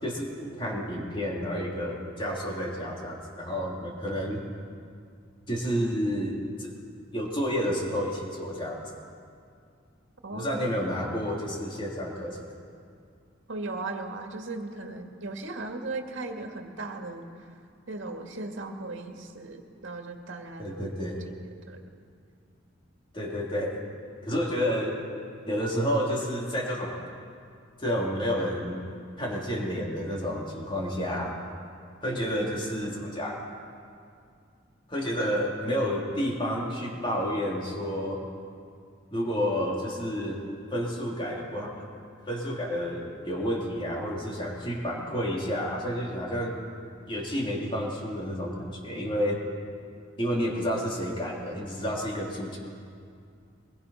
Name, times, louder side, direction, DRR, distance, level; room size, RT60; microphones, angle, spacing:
voice 1, 0.0-4.4 5.5-6.7 7.1-8.8 10.3-12.5 20.6-21.2 23.1-23.8 24.2-25.0 25.5-27.0 27.8-28.8 29.2-31.4 32.0-33.4 34.9-38.2 39.1-40.4 40.7-41.9 42.3-46.6 47.1-49.4 50.2-52.6, equal, 25° left, -2 dB, 3.1 m, -30 dB
voice 2, 10.2-10.7 13.5-17.5 17.9-20.9 21.3-21.4 21.7-21.9, right 2 dB, 65° right, 3 dB, 2.0 m, -37 dB
23.0 x 21.5 x 5.7 m, 2.4 s
head